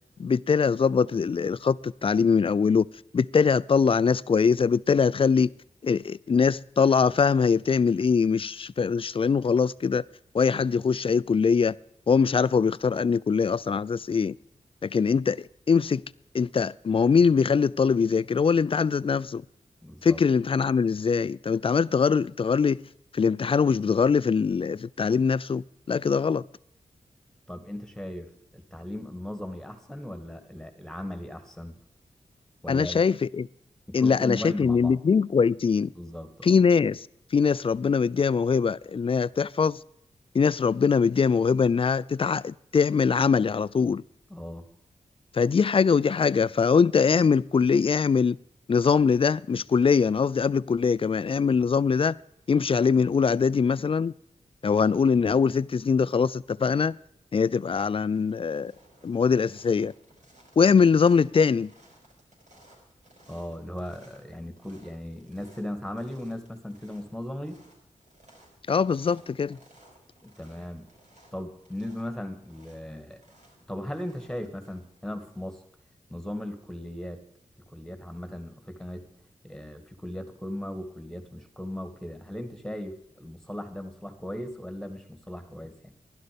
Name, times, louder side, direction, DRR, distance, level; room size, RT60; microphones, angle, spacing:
voice 1, 0.2-2.9 3.1-5.5 5.8-10.0 10.3-11.7 12.1-14.3 14.8-16.0 16.3-19.4 20.0-22.8 23.1-26.4 32.7-33.5 33.9-35.9 36.4-37.1 37.3-39.8 40.3-44.0 45.3-48.4 48.7-52.2 52.5-54.1 54.6-57.0 57.3-58.7 59.0-59.9 60.6-61.7 68.7-69.6, left 5 dB, 45° left, 0.4 m, -22 dB
voice 2, 19.8-20.2 27.5-31.8 32.6-33.0 33.9-35.0 35.9-36.5 44.3-44.7 63.3-67.6 70.2-70.9 71.3-73.2 73.7-75.6 76.1-77.2 77.6-79.1 79.4-85.9, left 1 dB, 5° left, 2.0 m, -37 dB
sound 1, 57.1-57.5 57.8-75.7, right 1 dB, 70° right, 5.6 m, -59 dB
12.0 x 11.5 x 5.1 m
cardioid pair, 60°, 13 cm